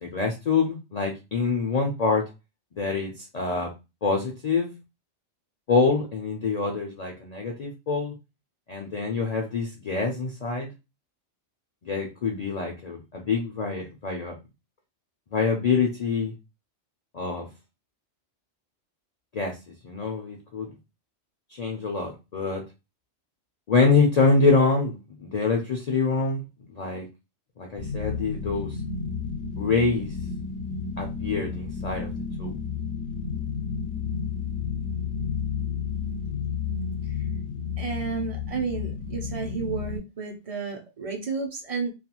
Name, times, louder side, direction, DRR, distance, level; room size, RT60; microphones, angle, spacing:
voice 1, 0.0-2.3 2.7-3.7 4.0-4.7 5.7-8.1 8.7-10.7 11.8-14.4 15.3-16.3 17.1-17.5 19.3-19.6 19.8-20.7 21.5-22.6 23.7-26.4 26.7-27.1 27.6-28.8 29.6-30.1 31.0-32.1 32.4-32.6, left 4 dB, 55° left, 1 dB, 0.4 m, -25 dB
sound 1, 27.8-40.0, left 6 dB, 80° left, 0.9 m, -31 dB
voice 2, 37.8-41.9, right 5 dB, 45° right, 2 dB, 0.5 m, -31 dB
2.4 x 2.3 x 2.9 m, 0.26 s
omnidirectional pair, 1.2 m